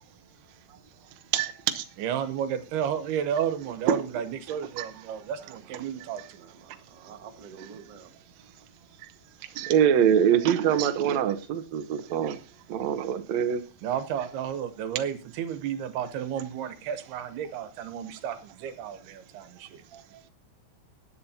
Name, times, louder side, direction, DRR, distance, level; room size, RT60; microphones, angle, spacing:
voice 1, 1.3-1.8 3.9-4.1 4.8-4.9 9.6-12.4 12.7-13.6, right 9 dB, 70° right, 8 dB, 1.7 m, -24 dB
voice 2, 2.0-6.5 13.8-19.8, right 9 dB, 85° right, 11 dB, 3.1 m, -32 dB
voice 3, 4.9-8.1 12.0-12.1 20.1-20.3, right 6 dB, 50° right, 3 dB, 2.2 m, -50 dB
20.5 x 9.6 x 2.8 m, 0.32 s
omnidirectional pair, 4.4 m